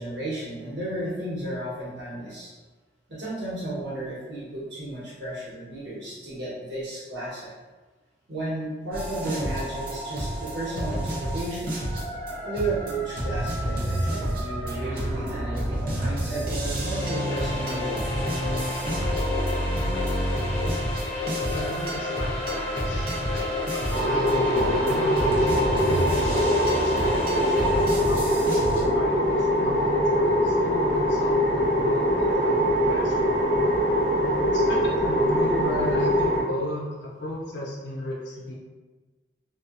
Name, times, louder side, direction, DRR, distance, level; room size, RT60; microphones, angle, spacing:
voice 1, 0.0-2.5 3.1-7.5 8.3-11.8 12.4-18.2 24.4-24.7, right 2 dB, 90° right, -8 dB, 1.0 m, -33 dB
sound 1, 8.9-28.9, right 1 dB, 55° right, 0.6 m, -30 dB
sound 2, 16.6-28.2, left 3 dB, 35° left, 0.7 m, -32 dB
voice 2, 21.5-23.5 24.0-33.4 34.4-38.6, left 1 dB, 85° left, -4 dB, 0.5 m, -35 dB
sound 3, 23.9-36.4, equal, 10° left, 1.2 m, -23 dB
2.6 x 2.3 x 2.4 m, 1.3 s
head